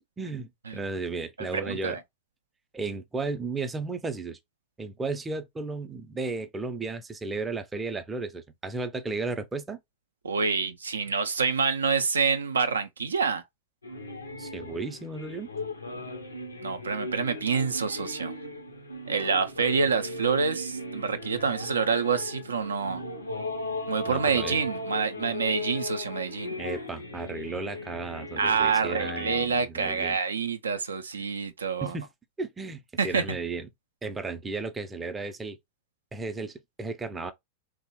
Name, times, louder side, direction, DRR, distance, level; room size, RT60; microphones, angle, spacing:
voice 1, 0.2-2.0 2.7-4.4 4.8-9.8 14.4-15.5 24.1-24.6 26.6-30.2 31.8-32.1 32.4-33.7 34.0-35.6 36.1-37.3, right 3 dB, 15° right, 0.4 m, -34 dB
voice 2, 1.4-2.0 10.2-13.4 16.6-18.3 19.1-23.0 23.9-26.5 28.4-31.9 33.0-33.2, right 5 dB, 80° right, 0.3 m, -27 dB
sound 1, 13.8-29.5, left 2 dB, 85° left, 0.5 m, -37 dB
2.8 x 2.0 x 2.8 m
figure-of-eight pair, 90°, 0 cm